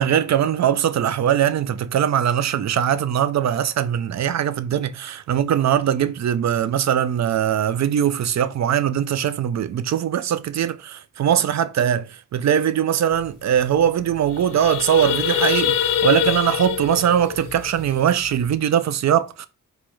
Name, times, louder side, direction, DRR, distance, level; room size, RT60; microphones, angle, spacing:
voice 1, 0.0-19.5, right 9 dB, 55° right, 0.4 m, -21 dB
sound 1, 13.2-13.3 13.6-13.8 14.1-18.5, left 9 dB, 70° left, 0.5 m, -24 dB
4.2 x 2.3 x 3.0 m
cardioid pair, 80°, 34 cm